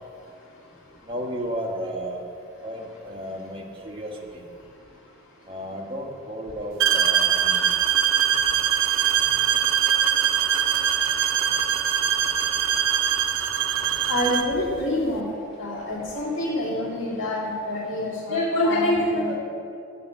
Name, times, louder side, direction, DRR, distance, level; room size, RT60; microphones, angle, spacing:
voice 1, 1.0-2.2 2.6-4.4 5.5-7.7, equal, 25° right, -1 dB, 1.2 m, -33 dB
sound 1, 6.8-14.6, right 9 dB, 65° right, 0.6 m, -22 dB
voice 2, 14.1-15.2 15.6-19.4, left 1 dB, 60° left, -6 dB, 2.3 m, -25 dB
8.6 x 6.7 x 8.0 m, 2.6 s
head